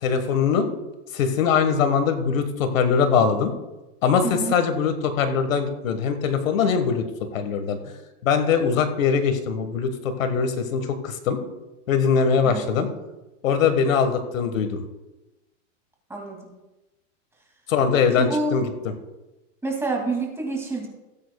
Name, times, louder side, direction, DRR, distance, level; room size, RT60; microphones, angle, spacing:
voice 1, 0.0-0.7 1.1-3.5 4.0-7.8 8.2-11.4 11.9-12.9 13.4-14.8 17.7-18.9, left 6 dB, 90° left, 8 dB, 1.5 m, -22 dB
voice 2, 4.2-4.5 12.4-12.7 16.1-16.4 18.2-18.5 19.6-20.9, right 3 dB, 5° right, 0 dB, 2.3 m, -27 dB
18.0 x 8.8 x 2.3 m, 1.0 s
supercardioid pair, 135°, 38 cm